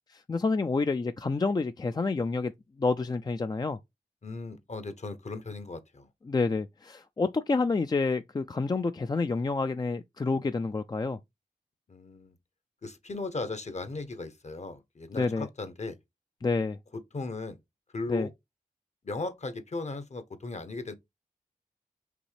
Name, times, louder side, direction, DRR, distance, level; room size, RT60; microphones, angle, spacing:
voice 1, 0.1-2.5 2.8-3.8 6.3-11.2 15.1-15.5 16.4-16.8 18.1-18.3, left 3 dB, 25° left, 0.3 m, -28 dB
voice 2, 4.2-6.1 11.9-12.4 12.8-16.0 16.9-17.6 17.9-18.3 19.0-20.9, left 3 dB, 50° left, 0.9 m, -37 dB
5.2 x 3.2 x 3.2 m
cardioid pair, 50°, 15 cm